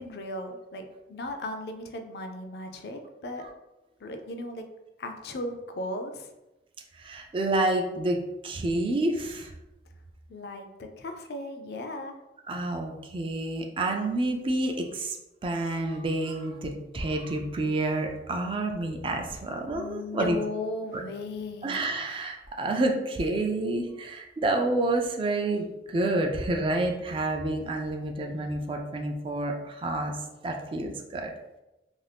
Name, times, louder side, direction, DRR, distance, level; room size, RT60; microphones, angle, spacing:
voice 1, 0.0-3.4 4.0-4.7 5.0-6.3 10.3-12.1 19.7-21.9, left 2 dB, 60° left, 5 dB, 0.4 m, -36 dB
voice 2, 7.0-9.5 12.5-15.2 15.4-20.4 20.9-21.0 21.6-30.2 30.4-31.3, right 2 dB, 30° right, 3 dB, 0.3 m, -29 dB
2.6 x 2.3 x 3.3 m, 0.98 s
head